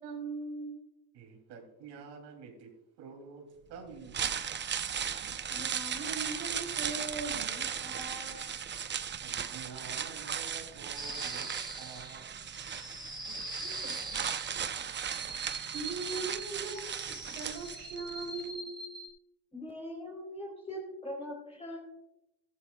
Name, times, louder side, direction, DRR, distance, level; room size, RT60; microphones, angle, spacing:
voice 1, 0.0-0.8 5.5-8.5 13.3-14.2 15.7-18.8, right 3 dB, 85° right, 2 dB, 4.2 m, -41 dB
voice 2, 1.1-2.7 3.0-4.3 9.2-11.5 11.8-12.2, right 5 dB, 65° right, 2 dB, 3.0 m, -48 dB
sound 1, 3.9-18.1 18.4-18.5, right 8 dB, 25° right, 0.6 m, -37 dB
sound 2, 10.9-19.1, right 2 dB, 10° right, 4.6 m, -43 dB
voice 3, 19.5-21.8, left 1 dB, 15° left, -2 dB, 3.6 m, -41 dB
14.0 x 13.0 x 2.3 m, 0.90 s
supercardioid pair, 100°, 44 cm